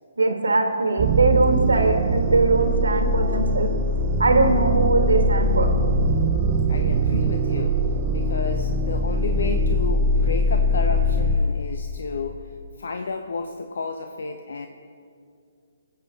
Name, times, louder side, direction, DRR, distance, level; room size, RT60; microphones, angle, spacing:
voice 1, 0.2-3.7 4.2-5.7, right 3 dB, 80° right, 5 dB, 1.5 m, -21 dB
sound 1, 1.0-11.4, right 1 dB, 35° right, 0.9 m, -22 dB
voice 2, 6.7-7.8 8.1-12.4 12.8-14.7, left 4 dB, 70° left, 6 dB, 0.7 m, -31 dB
21.5 x 7.9 x 4.1 m, 2.5 s
figure-of-eight pair, 135°, 0 cm